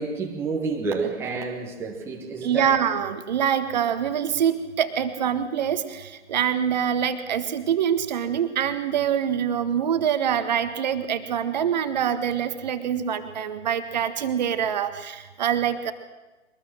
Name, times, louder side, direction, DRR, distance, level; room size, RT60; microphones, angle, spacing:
voice 1, 0.0-2.7, right 4 dB, 5° right, 0 dB, 1.6 m, -29 dB
voice 2, 2.4-15.9, right 8 dB, 35° right, 10 dB, 1.6 m, -25 dB
23.0 x 20.0 x 7.6 m, 1.1 s
figure-of-eight pair, 130°, 37 cm